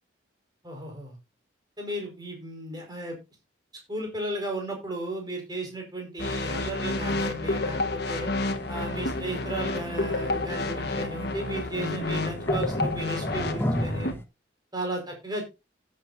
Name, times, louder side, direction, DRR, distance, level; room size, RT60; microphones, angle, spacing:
voice 1, 0.6-1.2 1.8-3.2 3.9-8.3 8.7-14.2 14.7-15.4, right 1 dB, 20° right, 2 dB, 4.9 m, -34 dB
sound 1, 6.2-14.1, left 2 dB, 55° left, 1.4 m, -30 dB
sound 2, 8.4-14.2, equal, 15° left, 1.2 m, -35 dB
16.0 x 8.7 x 2.7 m, 0.26 s
head